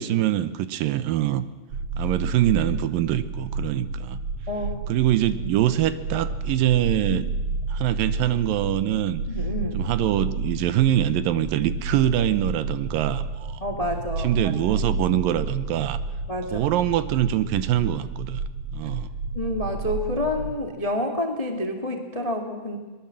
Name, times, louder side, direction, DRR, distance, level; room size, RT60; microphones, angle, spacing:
voice 1, 0.0-1.5 2.0-4.2 4.9-7.3 7.7-9.2 9.7-13.6 14.2-16.0 16.5-18.4 18.7-19.1, right 12 dB, 75° right, 13 dB, 2.5 m, -24 dB
sound 1, 1.7-20.6, right 3 dB, 50° right, 3.0 m, -31 dB
voice 2, 4.5-4.8 7.1-7.2 9.3-9.8 13.6-14.4 16.3-16.7 19.3-22.8, left 1 dB, 25° left, 4 dB, 0.8 m, -28 dB
22.5 x 20.5 x 7.6 m, 1.2 s
omnidirectional pair, 4.2 m